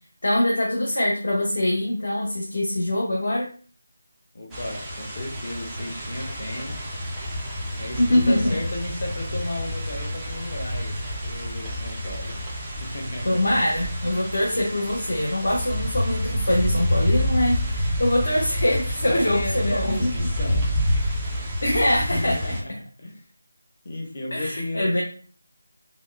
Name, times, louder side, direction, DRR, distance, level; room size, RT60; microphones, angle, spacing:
voice 1, 0.2-3.5 8.0-8.5 13.2-20.1 21.6-22.4 24.3-25.0, left 1 dB, 55° left, 0.9 m, -23 dB
voice 2, 4.3-6.8 7.8-12.4 12.8-13.4 19.1-20.8 22.0-23.2 23.8-25.0, left 1 dB, 30° left, 0.7 m, -33 dB
sound 1, 4.5-22.6, equal, 5° right, 0.3 m, -28 dB
3.4 x 2.3 x 2.5 m
figure-of-eight pair, 180°, 0 cm